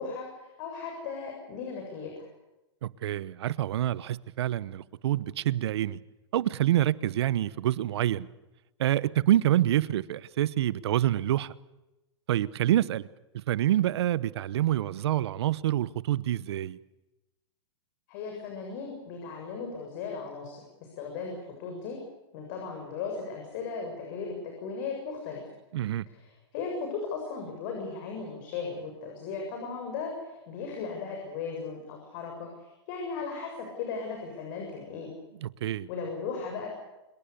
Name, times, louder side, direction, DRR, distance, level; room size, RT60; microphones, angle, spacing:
voice 1, 0.0-2.3 18.1-20.6 21.0-22.0 22.3-25.4 26.1-35.1 35.9-36.7, left 5 dB, 50° left, 7.4 m, -37 dB
voice 2, 2.8-6.0 6.3-8.3 8.8-11.5 12.3-13.1 13.5-16.8 25.7-26.0 35.4-35.9, right 12 dB, 70° right, 1.1 m, -27 dB
27.0 x 22.5 x 6.9 m
hypercardioid pair, 145°, 14 cm